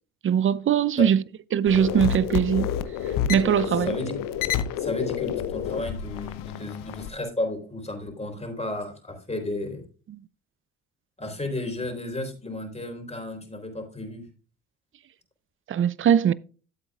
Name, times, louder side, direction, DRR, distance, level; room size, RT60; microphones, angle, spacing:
voice 1, 0.2-1.2 1.5-2.7 3.3-3.9 10.1-10.2 15.7-16.3, right 8 dB, 40° right, 0.5 m, -21 dB
sound 1, 1.7-7.1, left 9 dB, 75° left, 0.9 m, -29 dB
voice 2, 3.8-4.2 4.8-9.8 11.2-14.2, left 1 dB, 20° left, 3.6 m, -33 dB
13.0 x 7.8 x 2.4 m
supercardioid pair, 60°, 34 cm